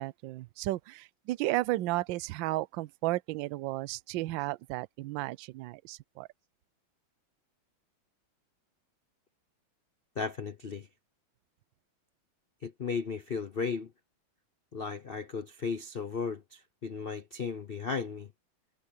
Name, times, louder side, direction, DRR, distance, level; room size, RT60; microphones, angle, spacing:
voice 1, 0.0-6.3, right 18 dB, 75° right, 1.3 m, -33 dB
voice 2, 10.2-10.9 12.6-13.9 14.7-18.3, left 5 dB, 70° left, 0.5 m, -35 dB
omnidirectional pair, 2.2 m